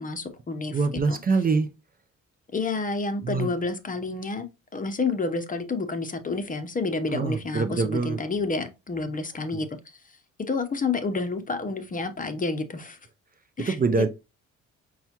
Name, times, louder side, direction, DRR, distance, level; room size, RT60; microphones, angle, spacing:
voice 1, 0.0-0.8 1.1-1.2 2.5-4.4 4.7-9.7 10.5-13.0 13.6-13.8, left 3 dB, 25° left, 0.7 m, -29 dB
voice 2, 0.7-1.7 3.2-3.5 7.1-8.2 9.5-9.6 13.6-14.1, right 4 dB, 30° right, 0.5 m, -25 dB
5.5 x 2.4 x 2.8 m
cardioid pair, 90°, 30 cm